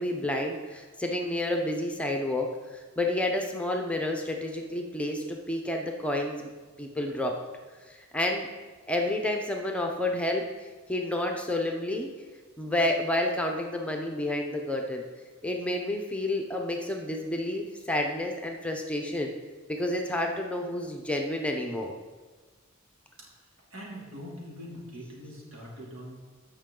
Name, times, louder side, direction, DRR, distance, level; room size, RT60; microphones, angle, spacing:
voice 1, 0.0-6.5 6.8-7.4 7.9-8.5 8.9-10.5 10.9-12.1 12.6-15.0 15.4-19.3 19.7-21.9, left 1 dB, 5° left, 2 dB, 0.7 m, -30 dB
voice 2, 23.7-26.2, equal, 90° right, -4 dB, 2.9 m, -42 dB
14.5 x 5.5 x 3.8 m, 1.3 s
head